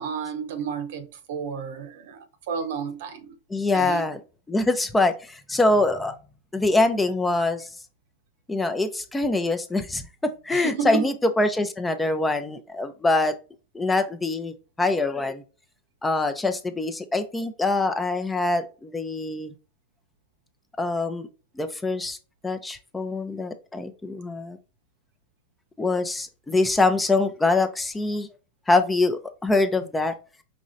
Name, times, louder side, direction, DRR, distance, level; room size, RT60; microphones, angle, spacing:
voice 1, 0.0-3.3 3.7-4.0 10.5-11.1, right 7 dB, 70° right, 0.9 m, -31 dB
voice 2, 3.5-4.2 4.5-6.2 6.5-7.7 8.5-13.4 13.7-15.4 16.0-19.5 20.8-21.3 21.6-22.2 22.4-24.6 25.8-28.3 28.7-30.1, left 2 dB, 10° left, 0.5 m, -24 dB
5.2 x 3.0 x 2.6 m
hypercardioid pair, 120°, 0 cm